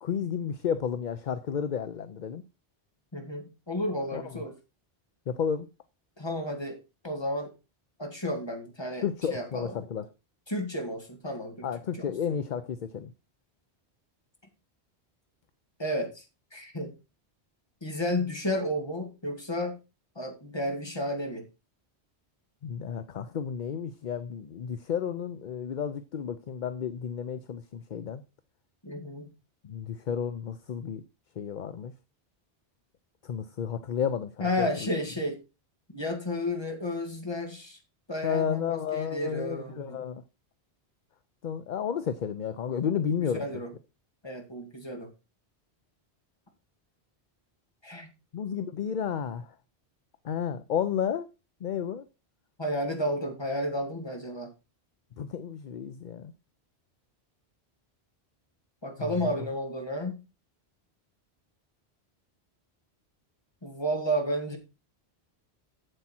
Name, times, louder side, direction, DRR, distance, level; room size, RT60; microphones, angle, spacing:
voice 1, 0.0-2.4 4.1-4.2 5.3-5.7 9.0-10.1 11.6-13.1 22.6-28.2 29.6-31.0 31.4-31.9 33.3-34.9 38.2-40.2 41.4-43.6 48.3-49.5 50.2-51.3 51.6-52.0 55.2-56.3 59.0-59.5, left 7 dB, 50° left, 0.7 m, -32 dB
voice 2, 3.1-4.5 6.2-6.8 7.0-7.5 8.0-9.7 10.5-11.7 12.0-12.4 15.8-16.2 16.5-16.9 17.8-19.8 20.2-21.4 28.8-29.3 34.4-35.4 35.9-37.8 38.1-40.0 43.4-43.7 44.2-45.1 47.8-48.1 52.6-54.5 58.8-60.2 63.6-64.6, equal, 25° left, 2.0 m, -32 dB
8.0 x 7.3 x 4.3 m
omnidirectional pair, 1.1 m